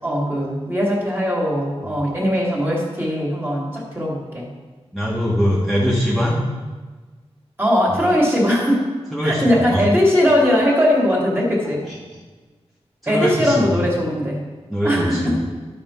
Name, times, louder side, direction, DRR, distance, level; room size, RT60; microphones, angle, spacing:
voice 1, 0.0-4.5 7.6-8.9 9.2-11.8 13.1-14.4 14.8-15.3, equal, 20° right, -3 dB, 2.5 m, -19 dB
voice 2, 4.9-6.4 7.9-8.0 9.1-9.8 11.9-12.0 13.0-13.6 14.7-15.3, equal, ahead, -7 dB, 1.6 m, -22 dB
12.0 x 4.5 x 5.8 m, 1.3 s
wide cardioid pair, 90°, 11 cm